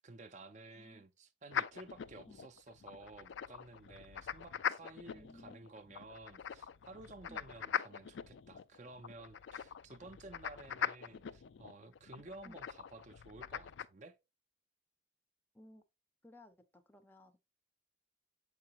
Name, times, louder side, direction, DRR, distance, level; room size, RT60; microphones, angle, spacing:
voice 1, 0.0-14.2, right 2 dB, 35° right, 0.5 m, -54 dB
voice 2, 0.7-1.1 2.3-2.4 5.1-5.7 7.3-7.5 12.4-12.6 15.5-15.8 16.2-17.4, left 1 dB, 10° left, 0.5 m, -58 dB
sound 1, 1.5-13.9, left 8 dB, 65° left, 0.3 m, -42 dB
7.5 x 4.8 x 2.9 m
head